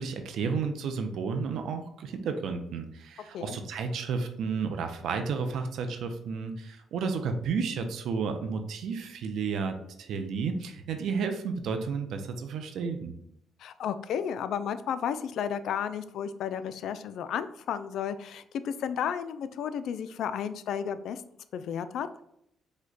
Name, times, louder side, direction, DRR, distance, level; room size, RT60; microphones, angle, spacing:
voice 1, 0.0-13.1, right 5 dB, 75° right, 6 dB, 0.5 m, -32 dB
voice 2, 13.6-21.2 21.5-22.1, left 8 dB, 75° left, 12 dB, 0.3 m, -33 dB
5.0 x 2.2 x 3.9 m, 0.74 s
cardioid pair, 90°, 0 cm